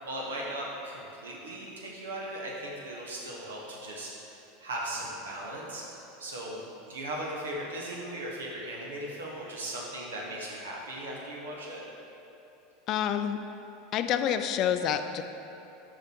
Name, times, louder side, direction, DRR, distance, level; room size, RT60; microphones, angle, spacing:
voice 1, 0.0-4.3 4.6-11.8, right 1 dB, 80° right, -3 dB, 1.2 m, -38 dB
voice 2, 12.9-13.4 13.9-15.2, left 9 dB, 45° left, 8 dB, 0.4 m, -28 dB
6.4 x 5.0 x 4.6 m, 2.9 s
hypercardioid pair, 85°, 0 cm